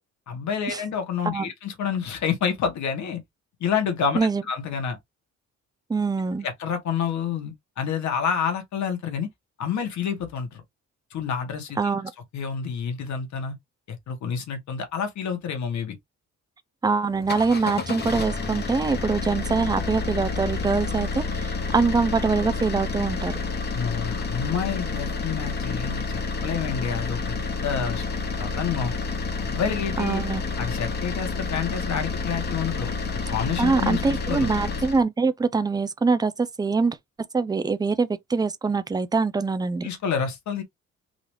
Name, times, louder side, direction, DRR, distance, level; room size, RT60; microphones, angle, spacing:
voice 1, 0.3-3.2 3.6-5.0 6.4-9.3 9.6-10.6 11.1-11.8 12.3-13.5 13.9-15.9 23.7-28.0 28.4-28.9 29.4-30.2 30.6-32.9 33.3-34.5 39.8-40.6, left 7 dB, 65° left, 1.6 m, -28 dB
voice 2, 5.9-6.5 11.8-12.1 16.8-23.4 30.0-30.4 33.6-37.0 37.3-39.9, right 4 dB, 15° right, 0.5 m, -24 dB
sound 1, 17.1-35.0, left 4 dB, 35° left, 1.1 m, -29 dB
4.0 x 2.8 x 3.3 m
cardioid pair, 90°, 30 cm